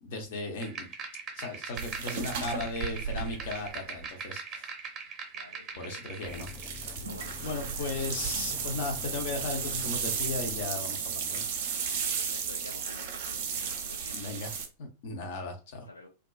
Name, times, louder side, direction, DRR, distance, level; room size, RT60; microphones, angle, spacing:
voice 1, 0.0-0.9 1.3-4.7 5.8-6.5 7.4-11.4 14.1-15.9, left 3 dB, 55° left, 0.8 m, -36 dB
sound 1, 0.6-6.6, right 5 dB, 25° right, 0.8 m, -41 dB
sound 2, 1.8-4.0 6.3-14.7, right 6 dB, 55° right, 0.6 m, -34 dB
voice 2, 5.3-6.0 7.0-8.1 11.7-14.3 15.9-16.1, left 2 dB, 85° left, 0.4 m, -49 dB
sound 3, 6.3-10.7, left 6 dB, 20° left, 0.4 m, -46 dB
2.5 x 2.2 x 2.3 m
figure-of-eight pair, 95°, 0 cm